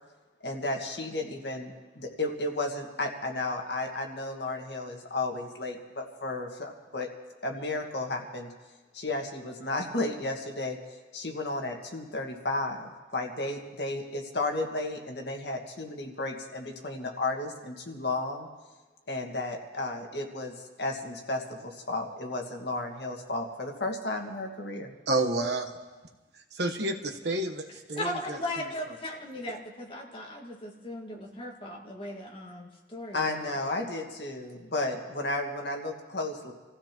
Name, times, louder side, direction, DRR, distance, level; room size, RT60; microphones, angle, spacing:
voice 1, 0.4-7.1 7.4-8.5 8.9-10.8 11.1-18.5 19.1-24.9 33.1-36.5, left 2 dB, 70° left, 2 dB, 1.8 m, -33 dB
voice 2, 25.1-25.7 26.5-28.4, right 2 dB, 70° right, 4 dB, 1.2 m, -29 dB
voice 3, 28.0-33.5, left 1 dB, 30° left, 0 dB, 1.8 m, -37 dB
27.0 x 15.5 x 3.0 m, 1.2 s
head